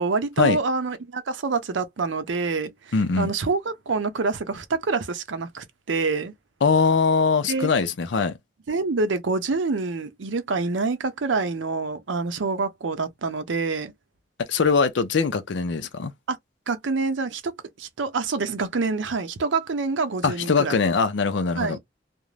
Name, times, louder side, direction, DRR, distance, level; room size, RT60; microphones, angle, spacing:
voice 1, 0.0-6.3 7.5-7.7 8.7-13.9 16.3-16.4 16.7-20.8 21.6-21.8, right 4 dB, 85° right, 0.6 m, -26 dB
voice 2, 2.9-3.3 6.6-8.4 14.5-16.1 20.2-21.8, left 4 dB, 75° left, 0.5 m, -22 dB
2.5 x 2.1 x 3.1 m
head